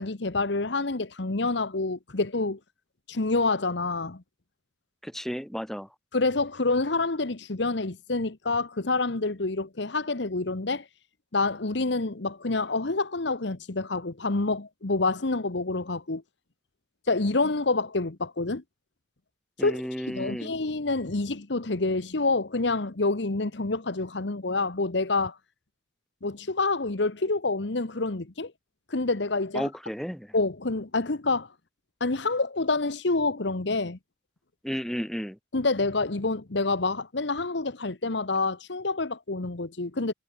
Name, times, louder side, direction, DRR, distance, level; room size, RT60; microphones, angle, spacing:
voice 1, 0.0-2.6 3.1-4.2 6.1-10.9 11.3-16.2 17.1-18.6 19.6-19.8 20.1-25.4 26.2-28.5 28.9-29.7 30.3-31.5 32.0-34.0 35.5-40.1, left 3 dB, 70° left, 1.2 m, -27 dB
voice 2, 5.0-5.9 19.6-20.5 29.5-30.3 34.6-35.4, equal, ahead, 4.6 m, -33 dB
head